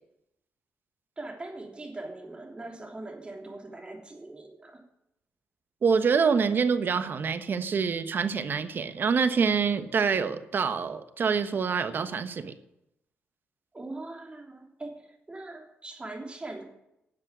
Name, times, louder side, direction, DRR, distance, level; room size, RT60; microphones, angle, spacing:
voice 1, 1.2-4.8 13.7-16.6, right 2 dB, 25° right, 2 dB, 3.2 m, -41 dB
voice 2, 5.8-12.5, right 5 dB, 50° right, 10 dB, 1.2 m, -26 dB
12.0 x 7.6 x 8.5 m, 0.84 s
cardioid pair, 90°, 4 cm